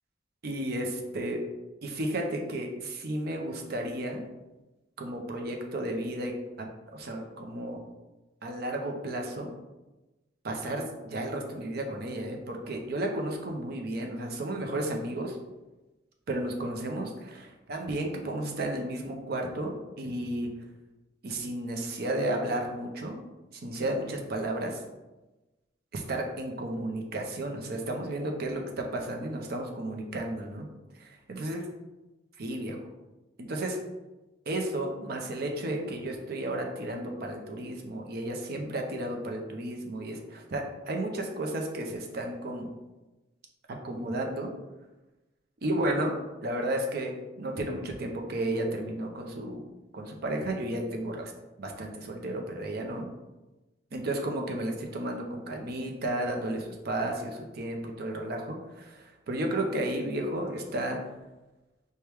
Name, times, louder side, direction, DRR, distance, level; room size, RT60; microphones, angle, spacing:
voice 1, 0.4-1.4 1.8-4.2 5.0-7.8 8.4-9.5 10.4-15.4 16.3-20.5 21.2-23.2 23.5-24.8 25.9-30.7 31.0-31.6 32.4-32.8 33.4-33.8 34.5-42.7 43.8-44.5 45.6-46.1 46.4-49.6 49.9-51.3 51.6-53.1 53.9-61.0, right 1 dB, 55° right, 2 dB, 0.6 m, -33 dB
4.5 x 2.2 x 3.4 m, 1.1 s
head